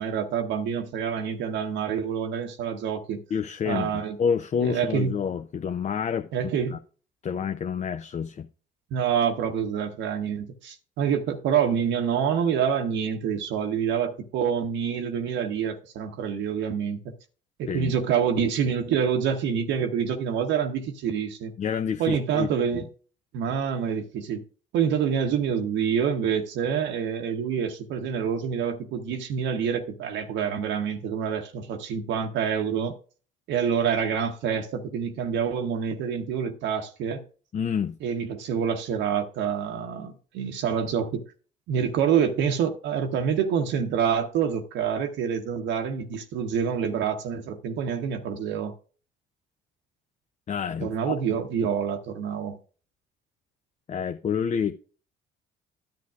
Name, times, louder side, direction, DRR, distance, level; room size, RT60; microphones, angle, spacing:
voice 1, 0.0-3.2 3.7-4.2 4.6-5.1 6.3-6.7 8.9-17.1 17.6-21.5 22.0-22.8 23.3-24.4 24.7-32.9 33.5-37.2 38.0-41.2 41.7-48.7 50.8-52.6, right 7 dB, 65° right, 0.9 m, -27 dB
voice 2, 3.3-6.3 6.7-6.8 7.2-8.5 17.7-17.9 21.6-22.5 22.7-22.8 37.5-38.0 50.5-51.1 53.9-54.8, left 7 dB, 35° left, 0.5 m, -28 dB
10.5 x 8.3 x 2.4 m
hypercardioid pair, 65°, 20 cm